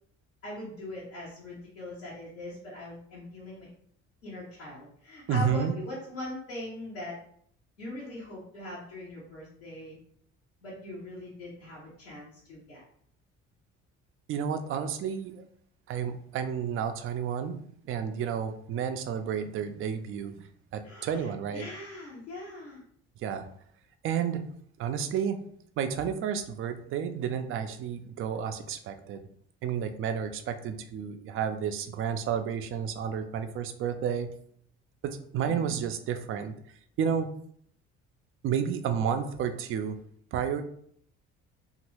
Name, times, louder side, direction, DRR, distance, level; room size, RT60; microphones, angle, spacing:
voice 1, 0.4-3.7 4.2-7.2 7.8-10.0 10.6-12.8 20.8-22.8 35.4-35.8, left 2 dB, 80° left, -8 dB, 0.9 m, -41 dB
voice 2, 5.3-5.7 14.3-15.4 15.9-17.6 17.9-20.5 20.7-21.7 23.2-23.5 24.0-24.4 24.8-25.4 25.8-29.3 29.6-34.3 35.0-36.6 37.0-37.3 38.4-40.0 40.3-40.6, right 8 dB, 35° right, 8 dB, 0.4 m, -31 dB
2.9 x 2.5 x 3.1 m, 0.64 s
figure-of-eight pair, 50°, 38 cm